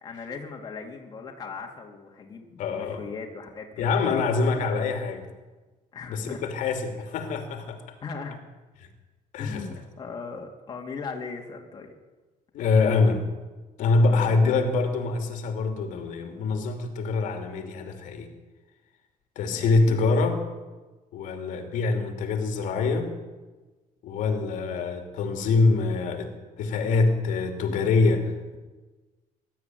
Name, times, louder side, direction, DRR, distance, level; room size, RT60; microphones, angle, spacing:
voice 1, 0.0-3.9 5.9-6.5 8.0-8.4 9.4-11.9 14.1-14.6 19.5-20.0, left 4 dB, 25° left, 0 dB, 2.7 m, -38 dB
voice 2, 2.6-3.0 3.8-5.3 6.1-7.8 9.3-9.7 12.5-13.2 13.8-18.3 19.4-20.4 21.1-23.1 24.0-26.3 26.6-28.6, left 3 dB, 60° left, 5 dB, 2.8 m, -24 dB
21.5 x 13.0 x 9.3 m, 1.2 s
cardioid pair, 175°, 15 cm